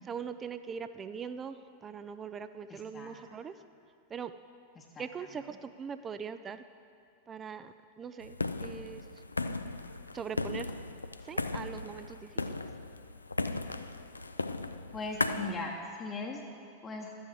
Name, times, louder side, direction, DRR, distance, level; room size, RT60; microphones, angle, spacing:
voice 1, 0.0-3.5 4.1-4.3 5.0-6.6 7.3-9.0 10.1-10.7 11.2-12.5, right 6 dB, 20° right, 11 dB, 0.3 m, -41 dB
voice 2, 2.7-3.2 4.8-5.3 14.9-15.7 16.0-16.4 16.8-17.1, left 3 dB, 20° left, 0 dB, 0.9 m, -39 dB
sound 1, 8.2-15.5, left 3 dB, 80° left, 0.3 m, -36 dB
12.5 x 8.5 x 4.8 m, 2.4 s
figure-of-eight pair, 90°, 0 cm